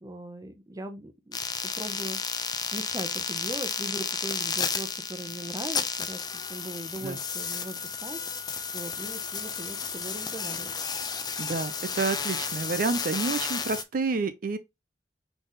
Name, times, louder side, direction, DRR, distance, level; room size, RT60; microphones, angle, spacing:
voice 1, 0.0-8.2 8.7-10.7, right 1 dB, 20° right, 0.7 m, -40 dB
sound 1, 1.3-13.8, left 5 dB, 25° left, 0.5 m, -32 dB
voice 2, 11.4-14.6, right 4 dB, 50° right, 0.5 m, -29 dB
4.0 x 3.4 x 3.8 m
head